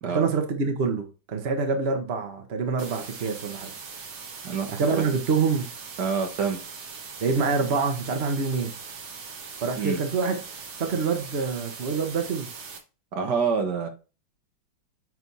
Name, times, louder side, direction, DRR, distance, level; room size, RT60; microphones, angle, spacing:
voice 1, 0.0-3.7 4.7-5.7 7.2-8.7 9.6-10.3 10.8-12.5, right 4 dB, 40° right, 1.1 m, -26 dB
sound 1, 2.8-12.8, right 5 dB, 90° right, 2.2 m, -41 dB
voice 2, 4.4-5.1 6.0-6.6 9.8-10.0 13.1-13.9, right 5 dB, 60° right, 1.6 m, -27 dB
9.1 x 3.4 x 4.1 m
omnidirectional pair, 2.2 m